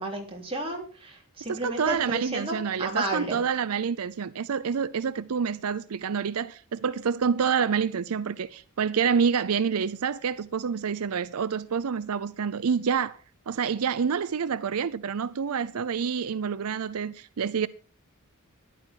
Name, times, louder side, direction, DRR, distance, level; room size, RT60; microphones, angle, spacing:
voice 1, 0.0-3.4, right 2 dB, 25° right, 3.5 m, -32 dB
voice 2, 1.5-13.2 13.5-17.7, right 6 dB, 80° right, 0.5 m, -27 dB
13.5 x 11.0 x 4.5 m
head